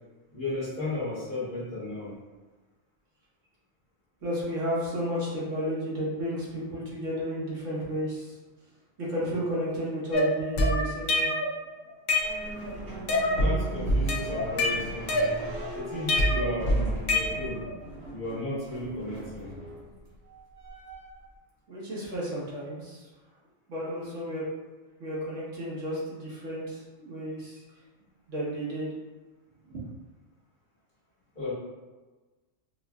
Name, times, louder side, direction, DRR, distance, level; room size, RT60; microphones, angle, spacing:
voice 1, 0.3-2.1 13.3-15.4 15.7-17.6 18.1-19.5 31.3-31.5, left 2 dB, 45° left, -9 dB, 1.4 m, -34 dB
voice 2, 4.2-8.3 9.0-11.3 21.7-23.0 23.7-24.4 25.0-27.6 28.3-28.9 29.7-29.8, equal, 75° right, -7 dB, 1.5 m, -32 dB
sound 1, 10.1-11.5 11.9-12.7 13.1-13.5 13.9-15.7 16.1-17.7, left 1 dB, 60° left, 0.7 m, -25 dB
sound 2, 12.2-21.3, right 1 dB, 55° right, 1.3 m, -40 dB
4.5 x 2.5 x 2.3 m, 1.3 s
omnidirectional pair, 1.3 m